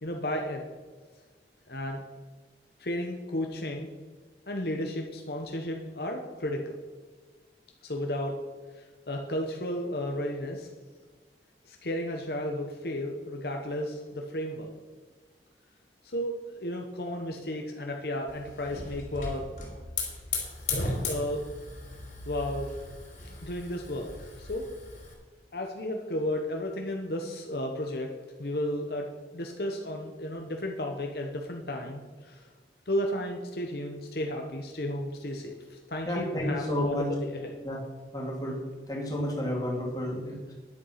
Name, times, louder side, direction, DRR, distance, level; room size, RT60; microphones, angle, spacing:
voice 1, 0.0-0.6 1.7-2.0 2.8-3.9 4.5-6.7 7.8-8.4 8.8-10.7 11.7-14.7 16.0-19.4 20.7-21.4 22.3-22.7 23.4-24.7 25.5-28.1 28.4-29.1 29.3-32.5 32.9-37.5, left 1 dB, 60° left, 2 dB, 1.1 m, -33 dB
Hiss / Fire, 18.3-25.1, left 3 dB, 45° left, 4.1 m, -37 dB
voice 2, 36.1-37.1 37.6-37.8 38.1-38.6 38.9-40.5, equal, 20° left, -2 dB, 2.7 m, -31 dB
11.0 x 8.2 x 5.8 m, 1.4 s
head